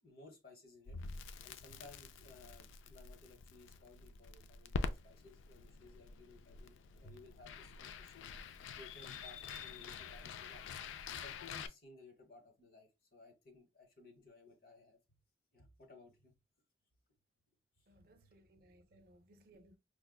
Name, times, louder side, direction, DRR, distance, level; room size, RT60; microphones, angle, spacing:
voice 1, 0.0-1.0 1.4-8.3 8.8-10.7 11.2-15.0 15.5-16.3 17.8-18.3, left 3 dB, 50° left, 0.9 m, -59 dB
Crackle, 0.9-11.7, left 5 dB, 85° left, 0.3 m, -46 dB
voice 2, 17.9-19.8, right 1 dB, 50° right, 0.5 m, -64 dB
4.8 x 2.1 x 2.3 m
head